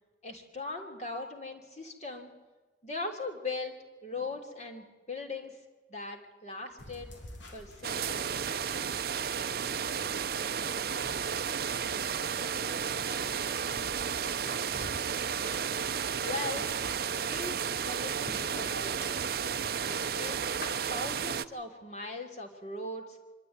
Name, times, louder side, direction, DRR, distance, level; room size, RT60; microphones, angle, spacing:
voice 1, 0.2-2.3 2.8-3.7 4.0-5.6 5.9-7.1 7.5-8.4 16.2-16.7 17.2-19.2 19.9-20.4 20.9-23.2, left 3 dB, 40° left, 2 dB, 3.1 m, -39 dB
sound 1, 6.8-20.7, left 1 dB, 85° left, 3.8 m, -50 dB
sound 2, 7.8-21.5, right 7 dB, 55° right, 0.6 m, -33 dB
voice 2, 10.5-11.2 12.3-14.5, right 1 dB, 20° right, 5 dB, 1.9 m, -52 dB
25.5 x 12.5 x 9.7 m, 1.3 s
head